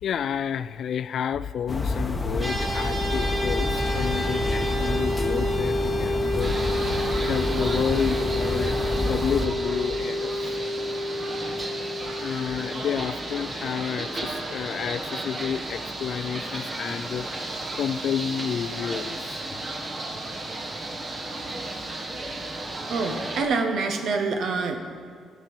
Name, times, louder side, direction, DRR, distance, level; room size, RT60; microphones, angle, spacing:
voice 1, 0.0-6.8 7.2-10.6 12.1-19.4, left 8 dB, 65° left, 15 dB, 0.3 m, -30 dB
sound 1, 1.7-9.5, left 1 dB, 20° left, 0.9 m, -28 dB
sound 2, 2.4-13.8, left 1 dB, 20° right, 3.4 m, -29 dB
sound 3, 6.4-23.4, right 2 dB, 40° right, 1.4 m, -34 dB
voice 2, 22.9-24.8, right 4 dB, 70° right, 5 dB, 1.2 m, -26 dB
15.0 x 5.3 x 6.1 m, 2.1 s
cardioid pair, 90°, 0 cm